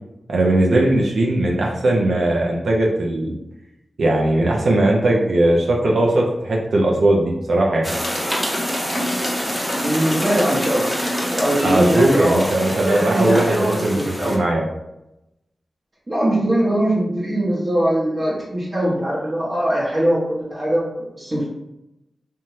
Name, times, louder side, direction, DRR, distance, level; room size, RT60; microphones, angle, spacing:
voice 1, 0.3-3.3 4.0-7.9 11.6-14.7, right 1 dB, 75° right, -1 dB, 0.5 m, -19 dB
sound 1, 7.8-14.4, equal, ahead, 0.7 m, -25 dB
voice 2, 9.7-10.9 11.3-12.4 12.8-14.4 16.1-21.5, right 1 dB, 45° right, -7 dB, 0.8 m, -21 dB
2.7 x 2.2 x 3.0 m, 0.91 s
cardioid pair, 50°, 0 cm